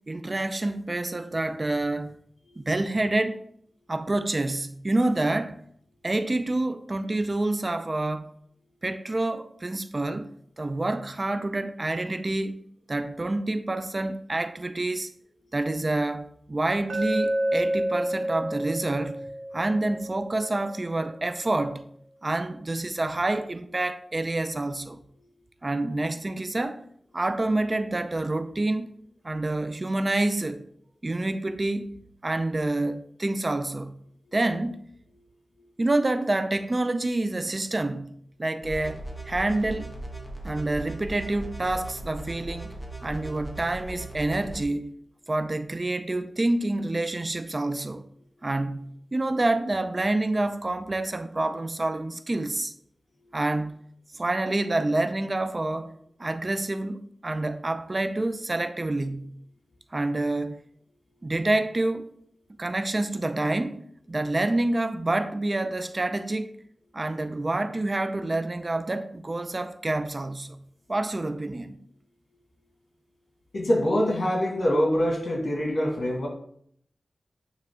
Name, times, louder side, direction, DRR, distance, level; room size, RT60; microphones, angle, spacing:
voice 1, 0.1-2.2 2.6-3.4 3.9-5.6 6.0-8.3 8.8-10.3 10.6-12.6 12.9-15.1 15.5-19.2 19.5-21.8 22.2-25.0 25.6-26.8 27.1-28.9 29.2-30.6 31.0-31.9 32.2-34.0 34.3-34.8 35.8-38.1 38.4-39.9 40.4-42.7 43.0-44.9 45.3-48.0 48.4-52.7 53.3-53.8 54.1-55.9 56.2-59.4 59.9-60.6 61.2-62.1 62.6-66.6 66.9-70.6 70.9-71.8, right 2 dB, 40° right, 0.4 m, -27 dB
Glass, 16.9-21.0, right 1 dB, 80° right, 0.6 m, -30 dB
sound 1, 38.6-44.6, right 1 dB, 10° left, 1.5 m, -38 dB
voice 2, 73.5-76.3, equal, 70° left, 1.8 m, -24 dB
9.0 x 3.2 x 3.6 m
cardioid pair, 55°, 0 cm